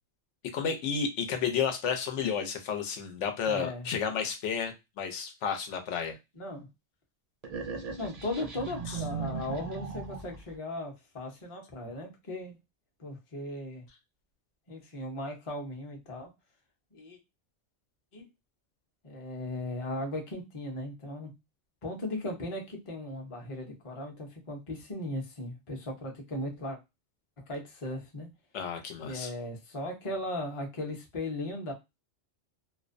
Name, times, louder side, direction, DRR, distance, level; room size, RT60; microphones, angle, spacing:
voice 1, 0.5-6.2 8.9-9.0 28.5-29.3, left 7 dB, 90° left, 6 dB, 0.9 m, -32 dB
voice 2, 3.5-3.9 6.4-6.7 8.0-12.6 13.0-13.8 14.7-16.3 16.9-17.2 18.1-18.3 19.0-21.3 21.8-26.8 27.4-28.3 29.1-31.7, left 1 dB, 35° left, 1 dB, 0.6 m, -37 dB
sound 1, 7.4-10.5, right 5 dB, 50° right, 0.5 m, -38 dB
2.5 x 2.1 x 2.4 m, 0.23 s
omnidirectional pair, 1.2 m